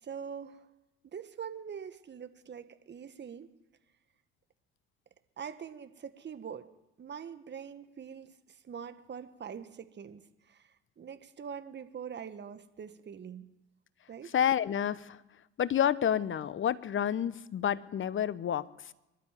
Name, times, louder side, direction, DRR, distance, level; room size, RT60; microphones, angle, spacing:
voice 1, 0.0-0.7 1.0-3.5 5.4-6.7 7.0-13.5 14.1-14.3, right 7 dB, 35° right, 10 dB, 1.7 m, -44 dB
voice 2, 14.3-15.2 15.6-18.6, left 9 dB, 40° left, 17 dB, 1.1 m, -29 dB
23.5 x 12.5 x 9.2 m, 0.97 s
hypercardioid pair, 60°, 29 cm